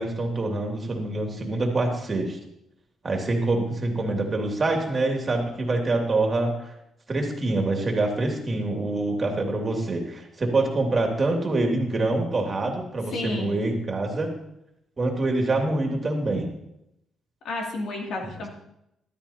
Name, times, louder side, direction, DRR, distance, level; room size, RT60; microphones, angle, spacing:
voice 1, 0.0-2.4 3.0-6.7 7.1-14.3 15.0-16.5, right 2 dB, 35° right, 2 dB, 2.4 m, -25 dB
voice 2, 13.1-13.6 17.4-18.5, left 2 dB, 75° left, 0 dB, 2.6 m, -31 dB
13.5 x 12.5 x 2.8 m, 0.80 s
cardioid pair, 90°, 0 cm